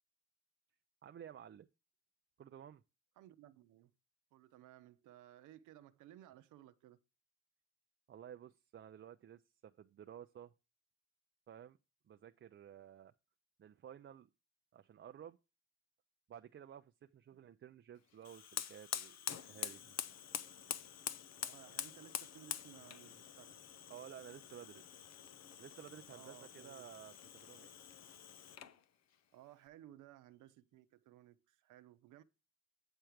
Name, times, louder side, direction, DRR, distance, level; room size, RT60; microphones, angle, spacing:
voice 1, 1.0-1.7 2.4-2.8 8.1-10.5 11.5-11.8 12.1-13.1 13.6-14.3 14.7-15.4 16.3-20.0 23.9-24.8 25.6-27.1 27.4-27.7, right 9 dB, 40° right, 0.6 m, -54 dB
voice 2, 3.2-3.9 4.3-7.0 17.3-17.5 21.4-23.6 26.1-26.9 29.3-32.2, right 13 dB, 85° right, 0.7 m, -59 dB
Fire, 18.2-28.8, left 9 dB, 60° left, 0.8 m, -46 dB
9.1 x 4.5 x 5.0 m
cardioid pair, 90°, 30 cm